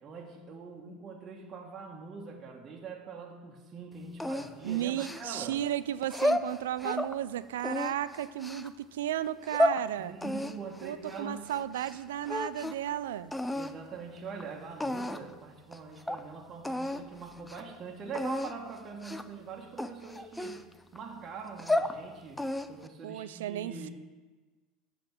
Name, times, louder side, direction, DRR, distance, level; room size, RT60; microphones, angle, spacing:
voice 1, 0.0-5.6 10.0-11.5 13.5-20.6 20.9-23.9, right 5 dB, 40° right, 0 dB, 1.3 m, -43 dB
sound 1, 4.2-5.5 6.0-7.1 7.6-8.7 9.3-9.8 10.2-12.0 12.2-12.9 13.3-13.7 14.4-14.5 14.8-15.3 15.7-15.8 16.1-16.2 16.6-17.0 17.4-17.6 18.1-18.5 19.0-19.3 19.8-21.0 21.4-22.0 22.4-22.9, left 1 dB, 10° left, 0.5 m, -32 dB
voice 2, 4.6-10.1 10.8-13.3 23.0-23.8, right 11 dB, 85° right, 14 dB, 0.3 m, -34 dB
7.8 x 6.7 x 7.5 m, 1.3 s
hypercardioid pair, 95°, 0 cm